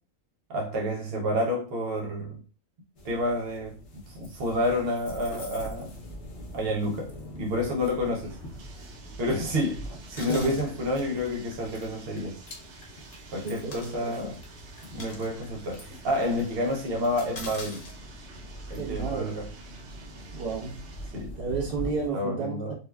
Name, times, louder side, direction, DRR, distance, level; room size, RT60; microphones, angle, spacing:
voice 1, 0.5-2.4 3.0-3.8 4.1-5.9 6.5-8.4 9.2-12.4 13.3-14.4 14.9-17.8 18.7-19.5 21.1-21.3 22.1-22.7, left 1 dB, 65° right, 0.6 m, -29 dB
sound 1, 3.0-22.1, equal, 55° left, 1.0 m, -43 dB
sound 2, 4.2-6.1 7.1-7.3 7.9-8.0 9.9-10.7 11.8-11.9 12.5-12.6 13.4-13.9 14.3-14.4 14.8-15.3 15.8-15.9 17.4-18.0 18.7-18.9, left 2 dB, 40° left, 0.6 m, -44 dB
Bathtub (filling or washing), 7.3-21.3, right 5 dB, 85° right, 1.2 m, -51 dB
voice 2, 10.1-10.6 13.3-14.3 18.8-19.3 20.3-20.8 21.4-22.7, right 4 dB, 40° right, 1.1 m, -32 dB
4.3 x 2.3 x 2.2 m
omnidirectional pair, 1.6 m